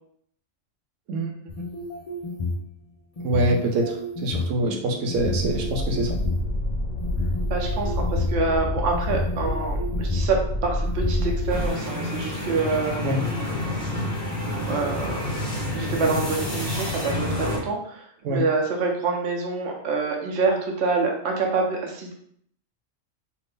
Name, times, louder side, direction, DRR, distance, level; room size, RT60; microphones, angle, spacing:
sound 1, 1.5-2.6 3.2-4.5 5.1-6.4 7.0-8.4 8.9-10.3 10.8-11.5, left 3 dB, 60° left, 0.3 m, -30 dB
voice 1, 3.2-6.2 13.0-13.2 18.2-18.5, right 1 dB, 90° right, 2 dB, 1.0 m, -25 dB
sound 2, 5.1-11.7, left 1 dB, 45° left, 0.8 m, -27 dB
voice 2, 7.5-13.0 14.4-15.2 15.7-22.1, right 4 dB, 65° right, 0 dB, 0.9 m, -26 dB
sound 3, 11.5-17.6, left 1 dB, 10° right, 0.8 m, -28 dB
2.6 x 2.6 x 3.3 m, 0.66 s
omnidirectional pair, 1.3 m